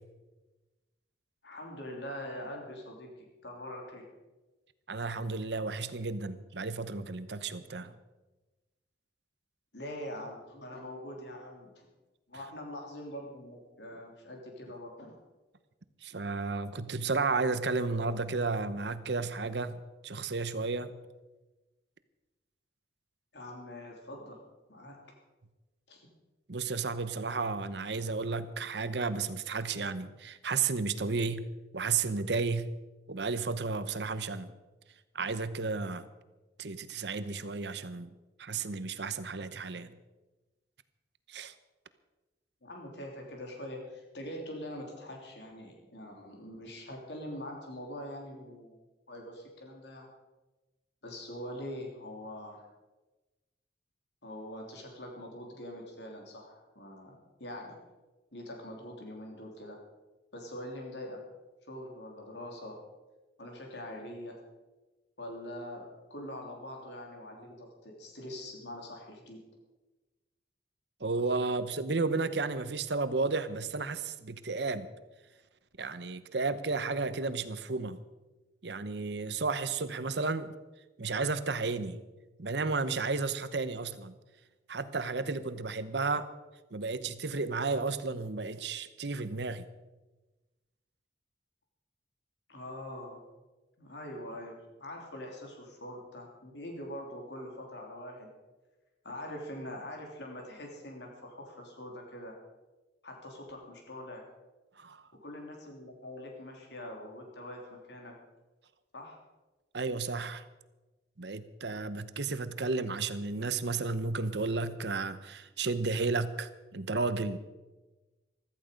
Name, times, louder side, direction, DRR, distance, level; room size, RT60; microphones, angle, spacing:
voice 1, 1.4-4.1 9.7-11.9 12.3-15.2 23.3-24.4 24.7-25.0 25.9-26.1 42.6-48.8 49.1-50.1 51.0-52.7 54.2-57.7 58.3-59.8 60.3-61.2 61.7-62.8 63.4-64.4 65.2-69.4 92.5-93.2 93.8-98.3 99.0-102.3 103.0-104.3 105.1-108.2 108.9-109.2, left 1 dB, 70° left, 1 dB, 3.3 m, -43 dB
voice 2, 4.9-7.9 16.0-21.0 26.5-31.5 31.7-32.7 33.1-34.5 35.1-36.1 36.6-38.1 38.4-39.9 41.3-41.5 71.0-74.9 75.8-78.0 78.6-80.5 81.0-82.0 82.4-84.1 84.7-86.3 86.7-89.6 104.8-105.1 109.7-110.4 111.2-117.4, right 4 dB, 65° right, 13 dB, 0.9 m, -33 dB
15.0 x 14.0 x 5.3 m, 1.1 s
head